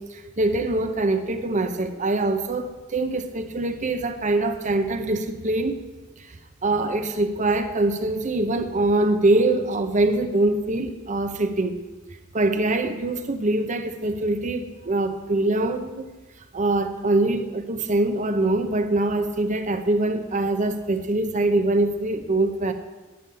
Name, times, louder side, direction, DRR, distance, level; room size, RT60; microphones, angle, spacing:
voice 1, 0.0-5.8 6.2-6.4 6.6-11.8 12.3-16.1 16.5-22.7, right 2 dB, 35° right, 7 dB, 0.7 m, -23 dB
9.9 x 7.2 x 8.6 m, 1.2 s
head